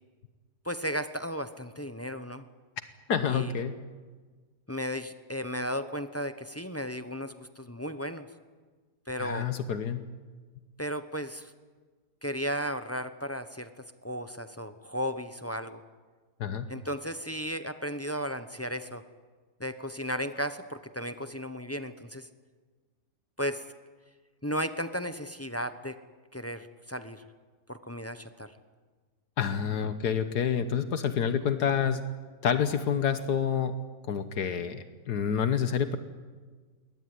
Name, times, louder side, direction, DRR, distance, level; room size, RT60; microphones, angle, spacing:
voice 1, 0.6-2.4 3.2-3.5 4.7-8.3 9.1-9.5 10.8-11.5 12.2-13.7 14.0-15.8 16.7-19.0 19.6-22.3 23.4-23.6 24.4-26.0 26.3-27.2 27.7-28.5, equal, 15° left, 10 dB, 0.6 m, -35 dB
voice 2, 3.1-3.8 9.2-10.0 16.4-16.7 29.4-32.0 32.4-33.7 34.1-36.0, left 7 dB, 75° left, 10 dB, 1.6 m, -28 dB
22.0 x 18.5 x 9.5 m, 1.4 s
omnidirectional pair, 1.8 m